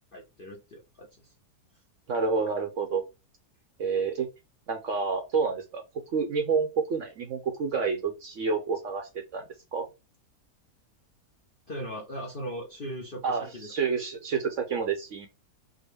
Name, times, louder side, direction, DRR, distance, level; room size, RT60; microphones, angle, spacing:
voice 1, 0.1-1.3 11.7-13.7, equal, 50° left, -1 dB, 0.6 m, -39 dB
voice 2, 2.1-3.0 3.8-4.3 4.7-5.8 6.1-9.4 9.7-9.9 13.2-15.3, right 5 dB, 60° right, 4 dB, 0.9 m, -29 dB
3.7 x 2.2 x 3.3 m, 0.26 s
omnidirectional pair, 1.8 m